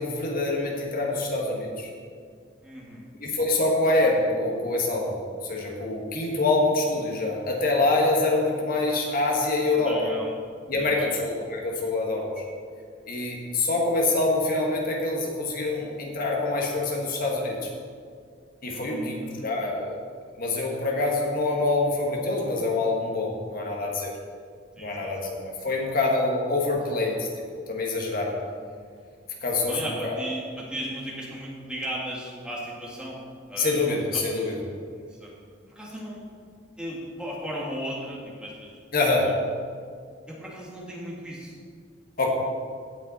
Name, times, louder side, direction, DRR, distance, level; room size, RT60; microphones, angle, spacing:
voice 1, 0.0-1.9 3.2-5.1 5.4-10.1 10.7-12.4 13.0-17.7 18.6-20.0 20.4-24.1 24.8-28.3 29.4-29.8 30.0-30.2 33.6-34.6 38.9-39.3 42.2-42.3, left 2 dB, 50° left, -1 dB, 1.4 m, -25 dB
voice 2, 2.6-3.0 9.9-10.4 10.8-11.1 18.6-19.5 24.8-25.3 28.6-28.8 29.7-33.2 33.5-34.5 34.8-35.3 35.7-36.2 36.8-38.7 40.3-41.6, equal, 5° right, -5 dB, 1.9 m, -36 dB
16.5 x 5.5 x 4.1 m, 2.1 s
head